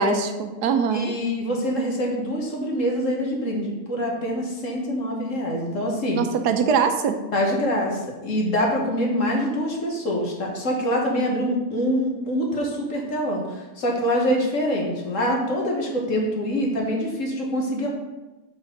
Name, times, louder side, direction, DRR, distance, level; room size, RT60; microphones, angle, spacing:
voice 1, 0.0-1.1 6.2-7.2, right 6 dB, 85° right, 7 dB, 1.3 m, -22 dB
voice 2, 0.9-6.2 7.3-17.9, equal, 55° left, -1 dB, 1.8 m, -25 dB
5.8 x 4.7 x 6.5 m, 1.1 s
omnidirectional pair, 1.6 m